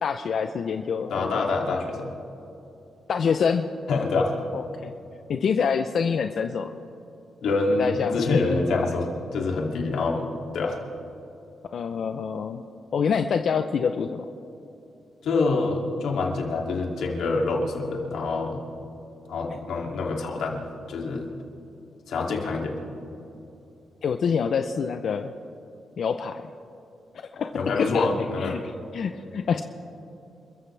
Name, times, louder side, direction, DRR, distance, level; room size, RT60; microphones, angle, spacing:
voice 1, 0.0-1.4 3.1-3.6 4.5-4.9 5.3-6.8 7.8-8.2 11.7-12.6 12.9-14.3 24.0-25.3 26.0-26.5 27.1-27.5 27.8-29.6, left 6 dB, 60° left, 7 dB, 0.6 m, -26 dB
voice 2, 1.1-2.1 3.9-4.3 7.4-9.1 9.3-10.3 10.5-10.8 15.2-18.6 19.3-20.6 20.9-21.2 22.1-22.8 27.3-28.6, left 3 dB, 85° left, 0 dB, 2.7 m, -26 dB
28.5 x 14.5 x 3.4 m, 2.8 s
cardioid pair, 115°, 0 cm